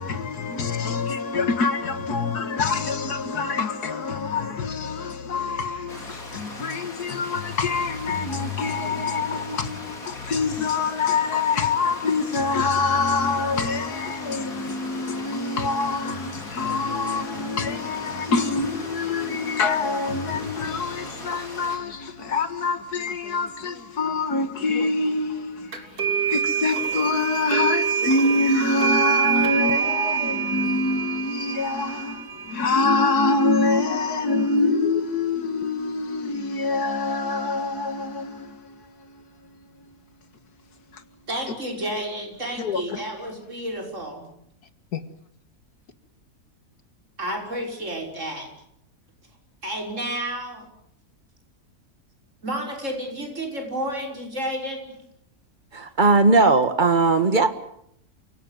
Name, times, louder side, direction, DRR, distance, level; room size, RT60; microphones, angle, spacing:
voice 1, 0.0-40.0 40.9-41.0 42.6-43.0 44.9-45.0, left 3 dB, 90° left, 2.3 m, -25 dB
Stream, 5.9-21.8, left 2 dB, 65° left, 4.4 m, -40 dB
sound 1, 25.7-34.6, right 7 dB, 70° right, 3.5 m, -27 dB
voice 2, 41.3-44.3 47.2-48.5 49.6-50.7 52.4-54.9, right 1 dB, 50° right, 6.5 m, -31 dB
voice 3, 55.7-57.5, right 3 dB, 30° right, 1.9 m, -18 dB
29.0 x 17.5 x 9.4 m
omnidirectional pair, 1.6 m